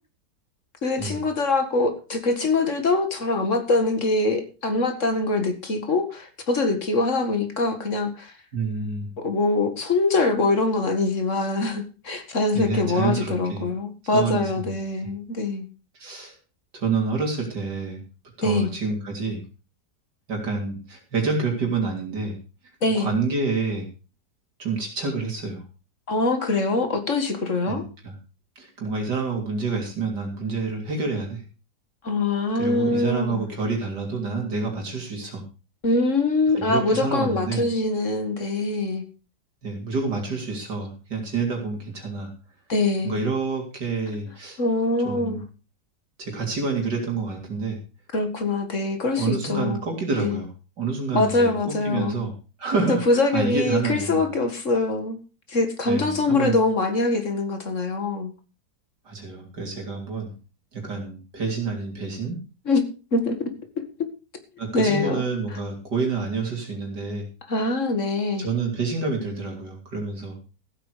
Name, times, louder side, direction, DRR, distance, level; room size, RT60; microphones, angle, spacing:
voice 1, 0.8-8.3 9.2-15.7 18.4-18.7 22.8-23.2 26.1-27.8 32.0-33.5 35.8-39.0 42.7-43.2 44.6-45.4 48.1-49.8 50.2-50.4 51.1-52.2 52.9-55.2 55.5-58.3 62.7-62.9 63.1-63.5 63.8-63.9 64.7-65.2 67.5-68.5, left 3 dB, 45° left, 7 dB, 2.2 m, -23 dB
voice 2, 8.5-9.1 12.5-13.7 14.0-14.7 15.9-16.3 16.7-18.0 18.4-19.4 20.3-22.4 22.9-23.9 24.6-25.6 27.7-28.2 28.6-31.4 32.6-35.4 36.6-37.7 39.6-42.3 43.0-44.6 45.0-45.4 46.2-47.8 49.2-50.5 50.8-52.3 52.6-54.3 55.9-56.6 59.1-60.3 60.7-62.5 64.6-67.3 68.4-70.5, right 4 dB, 80° right, 1 dB, 3.9 m, -28 dB
15.0 x 8.9 x 5.0 m, 0.33 s
omnidirectional pair, 1.8 m